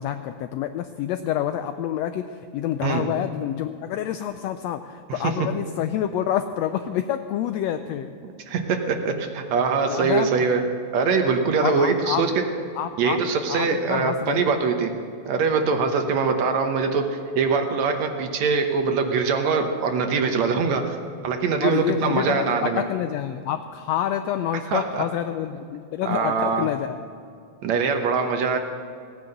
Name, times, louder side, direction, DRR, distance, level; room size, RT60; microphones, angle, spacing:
voice 1, 0.0-8.1 9.9-10.5 11.6-12.2 12.7-13.2 13.5-14.4 21.6-27.0, left 11 dB, 85° left, 9 dB, 1.5 m, -27 dB
voice 2, 8.5-10.6 10.9-12.3 13.0-14.9 15.3-21.0 21.2-22.8 24.7-25.0 26.1-26.7 27.6-28.6, right 5 dB, 70° right, 5 dB, 2.2 m, -23 dB
17.0 x 9.4 x 7.8 m, 2.4 s
omnidirectional pair, 3.5 m